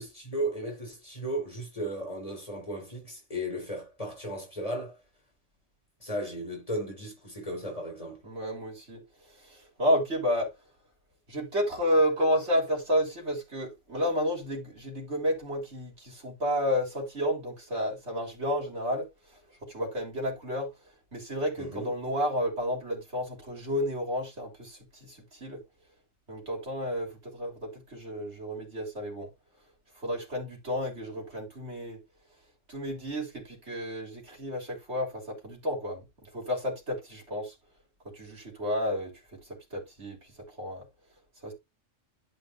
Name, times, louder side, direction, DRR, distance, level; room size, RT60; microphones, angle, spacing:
voice 1, 0.0-5.0 6.0-8.2 21.6-21.9, right 1 dB, 30° left, 3.8 m, -35 dB
voice 2, 8.2-9.0 9.4-10.5 11.3-19.1 19.7-20.7 21.1-25.6 26.3-29.3 30.0-32.0 32.7-36.1 36.3-37.5 38.1-39.4 39.7-40.2 40.6-40.8 41.4-41.5, equal, 65° right, 3.7 m, -31 dB
12.0 x 5.2 x 2.6 m
omnidirectional pair, 1.3 m